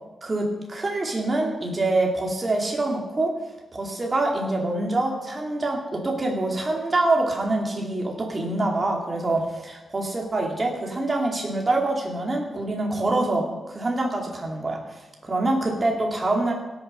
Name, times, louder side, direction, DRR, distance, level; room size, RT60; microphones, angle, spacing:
voice 1, 0.2-3.3 3.7-14.8 15.2-16.5, right 2 dB, 30° right, 0 dB, 2.3 m, -25 dB
17.0 x 6.8 x 5.4 m, 1.1 s
wide cardioid pair, 110°, 0 cm